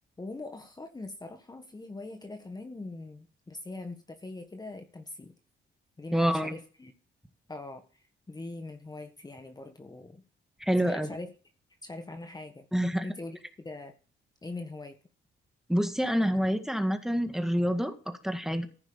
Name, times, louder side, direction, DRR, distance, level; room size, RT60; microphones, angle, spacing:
voice 1, 0.2-5.3 6.0-6.9 7.5-10.2 10.8-11.3 11.8-12.7 13.0-13.9 14.4-15.0, left 2 dB, 20° left, 6 dB, 1.6 m, -42 dB
voice 2, 6.1-6.6 10.6-11.1 12.7-13.1 15.7-18.7, equal, ahead, 7 dB, 1.9 m, -27 dB
15.0 x 5.8 x 7.1 m, 0.38 s
cardioid pair, 90°, 20 cm